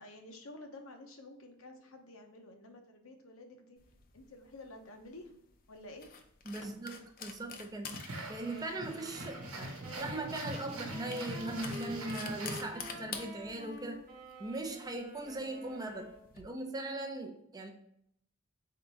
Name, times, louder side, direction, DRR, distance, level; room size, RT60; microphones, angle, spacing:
voice 1, 0.0-3.8 4.1-5.4 5.7-6.1 6.6-6.7, left 2 dB, 70° left, 4 dB, 0.8 m, -51 dB
sound 1, 3.8-16.4, left 6 dB, 45° left, 0.5 m, -49 dB
voice 2, 6.5-8.0 8.3-14.0 14.4-17.7, right 2 dB, 20° right, 4 dB, 0.5 m, -40 dB
sound 2, 7.9-13.1, right 1 dB, 85° right, 1.1 m, -43 dB
sound 3, 8.3-16.3, right 1 dB, 45° right, 1.0 m, -49 dB
4.1 x 3.8 x 3.4 m, 0.72 s
head